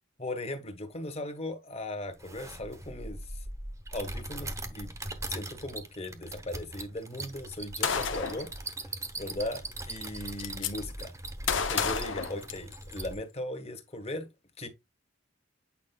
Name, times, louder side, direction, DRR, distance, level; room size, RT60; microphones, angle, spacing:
voice 1, 0.2-3.4 3.9-4.9 5.3-8.5 8.9-11.1 11.4-14.3 14.6-14.7, left 1 dB, 30° left, 1.4 m, -38 dB
sound 1, 2.1-13.2, right 2 dB, 15° right, 1.0 m, -40 dB
Gunshot gunfire, 7.8-8.5 9.6-9.7 10.0-10.7 11.5-13.0, left 6 dB, 65° left, 0.8 m, -30 dB
8.6 x 4.9 x 2.3 m
head